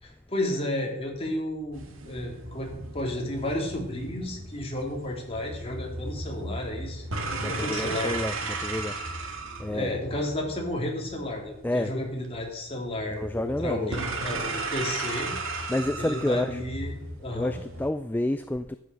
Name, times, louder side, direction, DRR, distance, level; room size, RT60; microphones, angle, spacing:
voice 1, 0.0-7.1 7.5-8.1 9.6-15.3 16.0-16.9 17.2-17.6, left 1 dB, 30° left, 0 dB, 3.1 m, -32 dB
sound 1, 1.7-17.9, right 3 dB, 70° right, 2.0 m, -36 dB
voice 2, 7.4-8.3 8.6-9.1 9.6-10.0 11.6-11.9 13.1-14.0 15.7-16.6 17.3-18.8, left 1 dB, 10° left, 11 dB, 0.3 m, -29 dB
12.5 x 8.3 x 6.4 m, 0.85 s
head